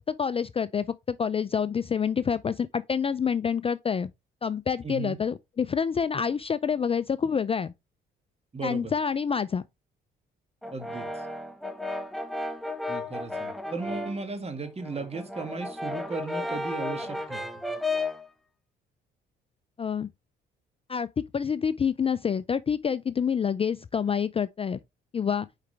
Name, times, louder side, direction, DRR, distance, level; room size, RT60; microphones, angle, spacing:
voice 1, 0.1-4.1 4.4-7.7 8.6-9.6 19.8-20.1 20.9-24.8 25.1-25.5, left 7 dB, 30° left, 0.4 m, -27 dB
voice 2, 4.8-5.2 8.5-8.9 10.7-11.1 12.9-17.4, right 3 dB, 30° right, 2.1 m, -36 dB
Brass instrument, 10.6-14.3 14.6-18.3, left 2 dB, ahead, 1.1 m, -33 dB
6.5 x 4.9 x 3.4 m
supercardioid pair, 70°, 21 cm